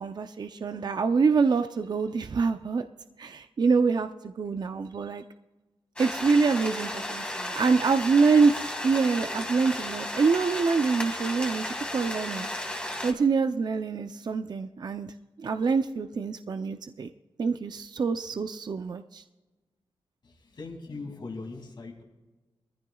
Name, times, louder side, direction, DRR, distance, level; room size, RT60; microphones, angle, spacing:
voice 1, 0.0-2.9 3.2-5.2 6.0-17.1 17.4-19.2, right 4 dB, 50° right, 8 dB, 0.5 m, -26 dB
sound 1, 6.0-13.1, left 1 dB, 10° left, 1.9 m, -34 dB
voice 2, 20.2-22.0, left 3 dB, 55° left, 1 dB, 2.5 m, -40 dB
22.0 x 14.5 x 2.3 m, 1.1 s
wide cardioid pair, 95°, 9 cm